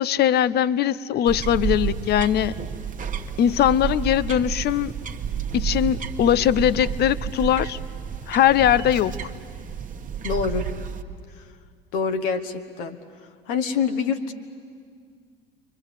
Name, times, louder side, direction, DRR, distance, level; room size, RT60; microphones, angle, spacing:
voice 1, 0.0-2.6 3.4-4.9 5.5-7.8 8.3-9.1, left 10 dB, 35° left, 20 dB, 0.7 m, -20 dB
sound 1, 1.3-11.0, right 7 dB, 25° right, 1.4 m, -30 dB
voice 2, 10.2-10.7 11.4-11.5 11.9-13.0 13.5-14.3, left 6 dB, 60° left, 6 dB, 1.5 m, -26 dB
29.5 x 24.0 x 8.2 m, 2.1 s
figure-of-eight pair, 70°, 31 cm